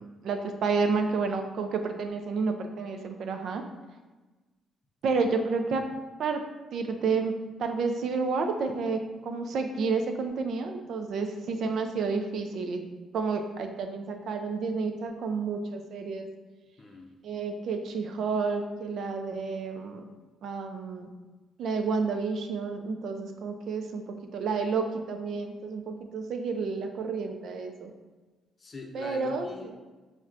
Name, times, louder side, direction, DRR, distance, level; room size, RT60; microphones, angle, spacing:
voice 1, 0.0-3.6 5.0-5.8 6.2-6.4 6.7-12.9 13.1-16.3 17.2-20.0 20.4-21.1 21.6-27.9 28.9-29.7, right 4 dB, 70° right, 5 dB, 0.4 m, -30 dB
voice 2, 16.8-17.1 28.6-29.7, left 3 dB, 35° left, 2 dB, 0.5 m, -43 dB
5.7 x 2.1 x 2.5 m, 1.2 s
cardioid pair, 90°, 0 cm